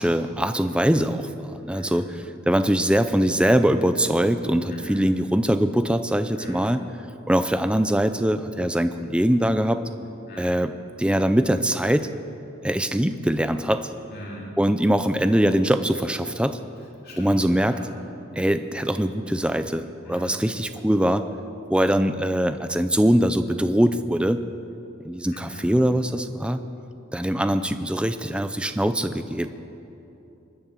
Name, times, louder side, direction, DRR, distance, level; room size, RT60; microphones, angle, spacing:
voice 1, 0.0-6.8 7.3-9.8 10.4-10.7 11.0-12.1 12.6-13.9 14.6-16.6 17.2-17.8 18.4-21.2 21.7-24.4 25.0-26.6 27.1-29.5, right 1 dB, 5° right, 10 dB, 0.4 m, -22 dB
voice 2, 1.7-2.1 4.7-5.0 6.4-6.7 10.3-10.5 14.1-14.6 17.0-17.3 17.7-17.9 20.0-20.4 25.3-25.7, equal, 45° left, -3 dB, 3.5 m, -41 dB
23.5 x 8.8 x 6.8 m, 2.9 s
head